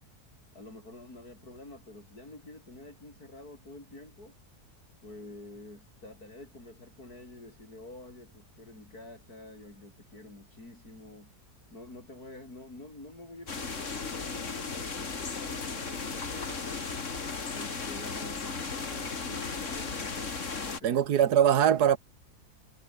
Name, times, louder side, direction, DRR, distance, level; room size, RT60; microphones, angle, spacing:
voice 1, 0.5-4.4 5.0-11.3 11.7-17.1 17.5-21.0, left 2 dB, 70° left, 7.9 m, -48 dB
sound 1, 13.5-20.8, left 4 dB, 50° left, 2.5 m, -36 dB
voice 2, 20.8-22.0, right 9 dB, 85° right, 1.7 m, -22 dB
omnidirectional pair, 1.7 m